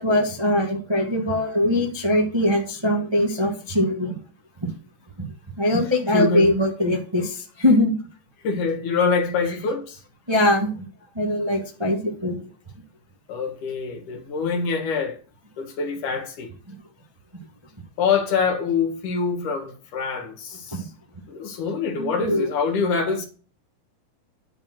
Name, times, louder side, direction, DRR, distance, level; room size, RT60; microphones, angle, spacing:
voice 1, 0.0-4.2 5.6-7.9 10.3-10.9 11.1-12.3 22.0-22.5, left 1 dB, 25° right, 0.6 m, -21 dB
voice 2, 6.1-6.6 8.4-10.0 13.3-15.2 15.6-16.5 18.0-20.9 21.3-23.3, left 5 dB, 65° left, 2.9 m, -25 dB
10.5 x 4.4 x 7.5 m
omnidirectional pair, 4.1 m